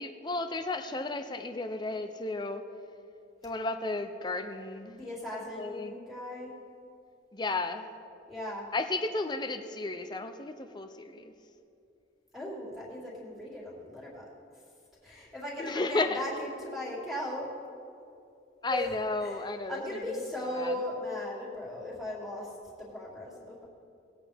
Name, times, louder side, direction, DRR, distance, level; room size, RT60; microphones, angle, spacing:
voice 1, 0.0-2.6 3.4-5.0 5.3-6.0 7.3-7.9 8.7-11.3 15.6-16.2 18.6-20.2 20.5-20.7, left 2 dB, 20° left, 8 dB, 0.5 m, -33 dB
voice 2, 4.9-6.5 8.3-8.7 12.3-14.3 15.0-17.5 18.7-18.9 19.2-22.5 22.8-23.7, left 1 dB, ahead, -7 dB, 2.4 m, -38 dB
19.5 x 8.4 x 3.4 m, 2.6 s
head